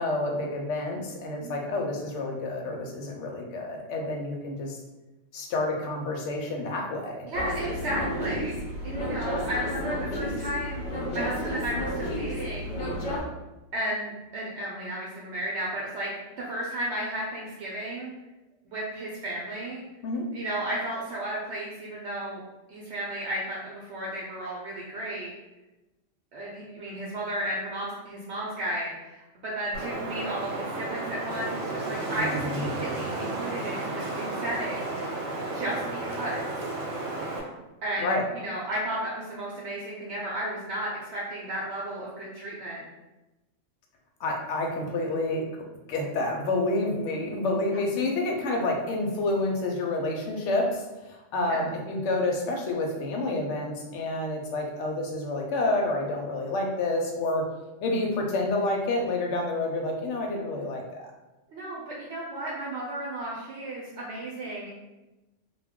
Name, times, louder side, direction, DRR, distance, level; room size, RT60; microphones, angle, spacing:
voice 1, 0.0-4.8 5.3-7.2 20.0-20.2 32.1-32.7 38.0-38.2 44.2-45.4 45.9-57.5 57.8-61.1, left 2 dB, 75° left, 1 dB, 0.9 m, -29 dB
voice 2, 7.2-8.6 8.8-10.8 11.1-12.7 13.7-18.1 18.7-19.8 20.3-22.4 22.7-25.3 26.3-34.9 35.5-36.4 37.8-42.9 51.5-51.6 61.5-64.7, right 1 dB, 70° right, -5 dB, 0.8 m, -33 dB
sound 1, 7.3-13.2, equal, 55° left, 0.5 m, -32 dB
Wind, 29.7-37.4, right 2 dB, 90° right, 1.1 m, -33 dB
2.2 x 2.2 x 3.5 m, 1.0 s
omnidirectional pair, 1.3 m